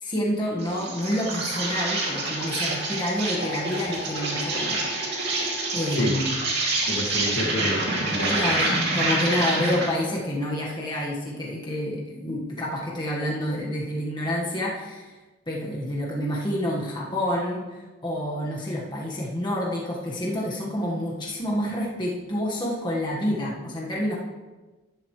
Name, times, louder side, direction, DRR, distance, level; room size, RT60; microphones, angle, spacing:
voice 1, 0.0-6.3 8.3-15.1 15.5-24.2, left 1 dB, 20° left, -4 dB, 1.6 m, -28 dB
Insect, 0.6-10.0, right 2 dB, 55° right, 2.7 m, -27 dB
voice 2, 6.9-8.3, left 1 dB, 80° left, -1 dB, 2.2 m, -28 dB
12.0 x 11.5 x 3.3 m, 1.2 s
head